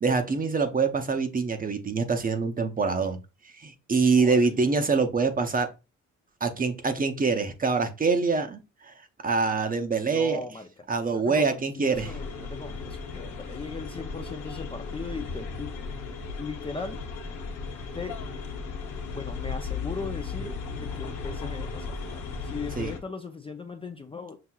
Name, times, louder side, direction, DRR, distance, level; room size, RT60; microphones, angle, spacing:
voice 1, 0.0-3.2 3.6-5.7 6.4-8.9 9.2-10.4 10.9-12.1 22.8-22.9, right 4 dB, 30° right, 0.7 m, -25 dB
voice 2, 4.2-4.6 10.0-10.7 11.1-15.7 16.4-17.0 17.9-18.2 19.1-24.4, left 4 dB, 20° left, 0.4 m, -38 dB
sound 1, 11.9-23.0, left 4 dB, 75° left, 0.9 m, -36 dB
5.9 x 2.7 x 2.3 m
cardioid pair, 90°, 30 cm